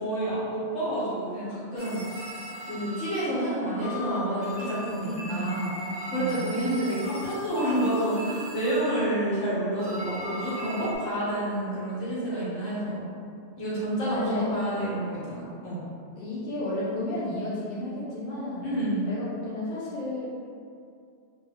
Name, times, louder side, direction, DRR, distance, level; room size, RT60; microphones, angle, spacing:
voice 1, 0.0-2.0 2.7-5.7 6.1-13.0 13.6-15.8 18.6-19.1, right 1 dB, 75° left, -9 dB, 1.4 m, -29 dB
sound 1, 1.8-3.5 3.8-9.4 9.8-11.0, equal, 45° right, 0.9 m, -38 dB
voice 2, 5.0-5.7 6.0-6.6 14.1-14.4 16.1-18.7 19.1-20.2, left 1 dB, 55° left, -9 dB, 0.9 m, -32 dB
2.8 x 2.7 x 3.2 m, 2.4 s
omnidirectional pair, 1.2 m